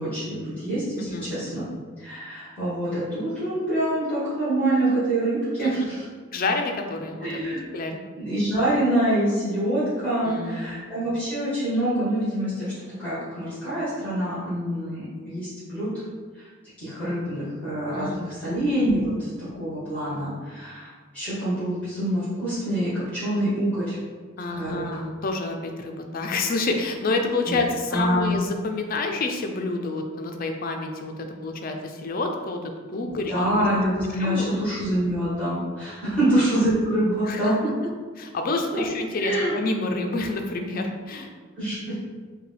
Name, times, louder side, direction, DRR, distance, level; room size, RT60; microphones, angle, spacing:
voice 1, 0.0-1.6 2.0-6.0 7.2-7.6 8.2-12.7 13.0-15.9 16.3-16.5 16.8-19.3 19.5-24.0 24.5-24.8 27.5-27.6 27.9-28.4 33.1-37.7 38.7-38.8 39.2-39.5 41.5-41.9, right 1 dB, 5° left, -13 dB, 1.3 m, -25 dB
voice 2, 1.0-1.3 5.6-5.7 6.3-8.0 10.2-10.7 17.9-18.5 24.4-33.7 34.2-34.6 36.0-36.3 37.3-37.6 38.2-41.3, left 3 dB, 40° left, 4 dB, 0.4 m, -29 dB
5.0 x 2.2 x 3.3 m, 1.5 s
head